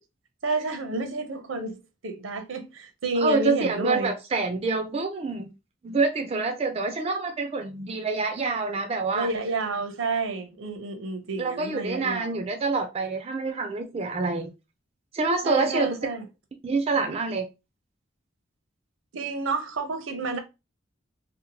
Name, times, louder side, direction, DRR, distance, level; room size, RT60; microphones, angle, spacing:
voice 1, 0.4-4.1 9.1-12.4 15.4-16.3 19.1-20.4, right 3 dB, 80° right, 0.6 m, -30 dB
voice 2, 3.2-5.5 5.8-9.3 11.4-14.5 15.1-16.0 16.6-17.5, right 3 dB, 30° right, 0.3 m, -26 dB
2.7 x 2.1 x 2.8 m
head